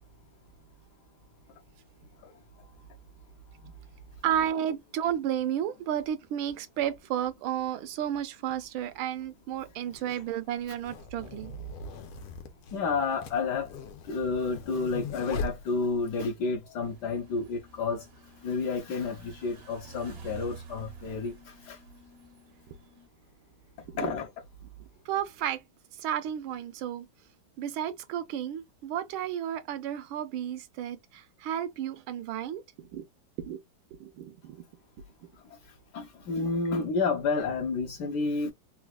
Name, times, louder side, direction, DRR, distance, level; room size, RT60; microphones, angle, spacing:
voice 1, 4.2-11.5 23.9-24.1 25.1-25.6 26.0-27.1 27.6-33.0 33.4-33.6 33.9-34.6, right 10 dB, 80° right, 1.4 m, -32 dB
sound 1, 8.8-8.9 9.8-16.2, left 3 dB, 90° left, 1.6 m, -40 dB
voice 2, 12.7-13.7 14.0-18.0 18.4-21.8 24.0-24.3 35.9-38.5, left 4 dB, 70° left, 1.1 m, -30 dB
sound 2, 16.8-23.1, right 4 dB, 55° right, 0.6 m, -49 dB
4.0 x 2.2 x 2.2 m
omnidirectional pair, 2.3 m